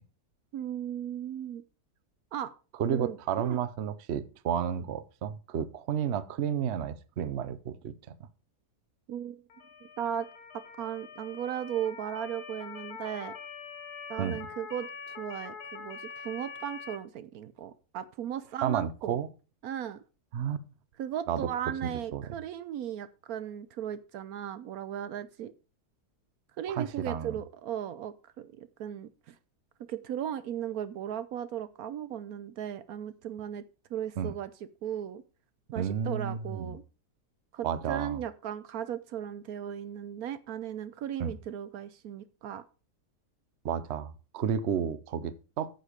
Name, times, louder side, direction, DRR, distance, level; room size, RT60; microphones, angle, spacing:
voice 1, 0.5-1.6 2.3-2.5 2.9-3.6 9.1-9.4 9.8-10.3 10.8-13.3 14.1-19.2 19.6-20.0 21.0-25.5 26.6-29.4 29.9-33.6 33.9-34.5 34.8-35.2 35.7-36.8 37.5-42.6, right 10 dB, 75° right, 1.1 m, -36 dB
voice 2, 2.8-7.9 14.2-14.4 18.6-19.3 20.3-20.6 21.3-21.5 21.8-22.3 26.7-27.3 34.2-34.3 35.8-36.8 37.6-38.2 41.2-41.3 43.6-45.7, right 8 dB, 55° right, 0.9 m, -32 dB
Motor vehicle (road) / Siren, 9.5-17.0, left 6 dB, 80° left, 1.7 m, -44 dB
9.5 x 6.6 x 5.0 m
omnidirectional pair, 1.7 m